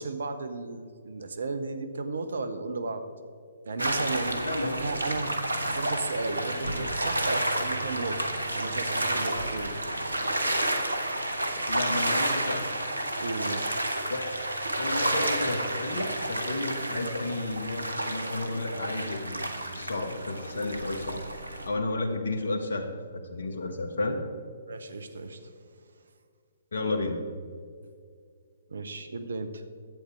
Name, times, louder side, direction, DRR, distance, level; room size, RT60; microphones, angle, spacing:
voice 1, 0.0-3.1 3.6-4.4 4.7-5.4 5.6-8.3 8.5-9.7 13.2-13.8 24.7-25.5 28.7-29.6, right 3 dB, 65° right, 9 dB, 0.9 m, -34 dB
sound 1, 3.8-21.7, right 1 dB, 85° right, 1.1 m, -30 dB
voice 2, 4.4-4.8 11.7-12.7 14.1-14.4 14.8-19.5 19.7-21.2 21.6-24.2 26.7-27.2, left 2 dB, 65° left, 6 dB, 1.3 m, -32 dB
11.5 x 8.3 x 4.6 m, 2.2 s
figure-of-eight pair, 125°, 0 cm